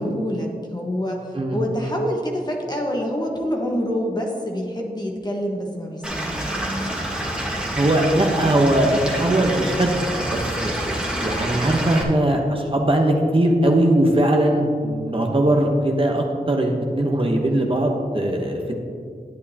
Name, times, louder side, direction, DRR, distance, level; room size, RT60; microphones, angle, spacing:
voice 1, 0.0-1.2 1.5-6.5, equal, 25° left, -1 dB, 1.3 m, -26 dB
Stream / Liquid, 6.0-12.0, right 1 dB, 5° right, 1.5 m, -27 dB
voice 2, 7.8-10.7 11.2-18.8, right 1 dB, 35° right, 1 dB, 0.9 m, -20 dB
11.0 x 8.9 x 2.8 m, 2.2 s
wide cardioid pair, 65°, 16 cm